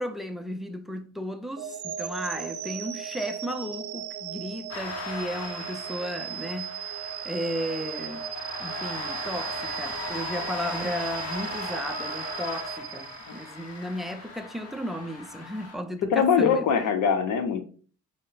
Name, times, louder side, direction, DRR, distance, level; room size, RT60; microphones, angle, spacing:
voice 1, 0.0-6.7 7.3-8.3 8.6-16.7, equal, ahead, 0.4 m, -34 dB
sound 1, 1.6-13.7, right 10 dB, 75° right, 0.7 m, -37 dB
sound 2, 4.7-15.7, left 3 dB, 55° left, 1.1 m, -38 dB
voice 2, 16.1-17.6, left 6 dB, 80° left, 0.8 m, -22 dB
5.2 x 2.1 x 3.9 m
cardioid pair, 90°, 30 cm